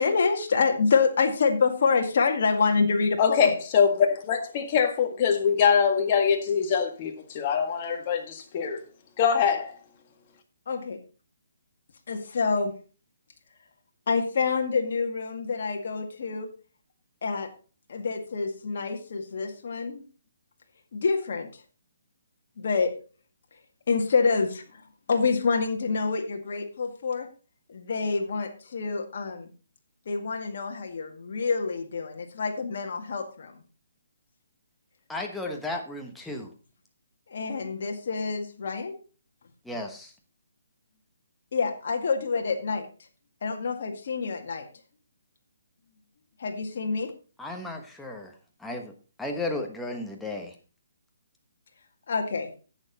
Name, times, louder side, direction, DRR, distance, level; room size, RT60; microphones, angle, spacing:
voice 1, 0.0-3.5 10.7-11.0 12.1-12.7 14.1-16.5 17.2-17.5 17.9-20.0 20.9-21.5 22.6-22.9 23.9-24.6 25.1-27.3 27.7-29.5 30.1-33.5 37.3-39.0 41.5-42.9 43.4-44.7 46.4-47.1 52.1-52.5, left 4 dB, 55° left, 2.0 m, -27 dB
voice 2, 3.2-8.8 9.2-9.7, left 7 dB, 30° left, 1.7 m, -23 dB
voice 3, 35.1-36.5 39.6-40.1 47.4-48.3 48.6-48.9 49.2-50.5, left 2 dB, 5° left, 1.2 m, -34 dB
10.5 x 8.0 x 4.1 m
hypercardioid pair, 165°, 0 cm